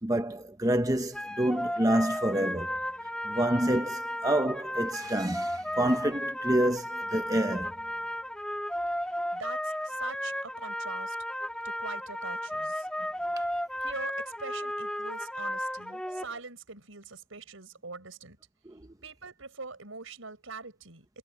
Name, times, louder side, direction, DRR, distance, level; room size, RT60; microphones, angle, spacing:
voice 1, 0.0-2.8 3.2-7.7 16.1-16.2 18.6-18.8, right 1 dB, 15° right, 0.9 m, -28 dB
sound 1, 1.1-16.2, equal, 5° left, 2.7 m, -34 dB
voice 2, 9.3-11.2 11.6-12.9 13.8-18.4 19.0-21.2, right 4 dB, 90° right, 6.0 m, -43 dB
head